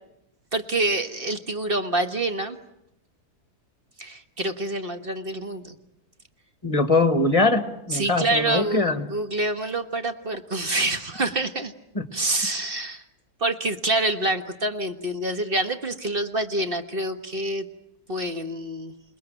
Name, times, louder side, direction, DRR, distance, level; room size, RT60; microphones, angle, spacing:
voice 1, 0.5-2.6 4.0-5.7 7.9-11.7 12.1-13.0 13.4-17.7 18.1-18.9, right 2 dB, 35° right, 7 dB, 1.6 m, -27 dB
voice 2, 6.6-9.1 12.0-12.1, left 3 dB, 20° left, 9 dB, 1.8 m, -22 dB
28.5 x 20.0 x 9.1 m, 0.83 s
omnidirectional pair, 1.6 m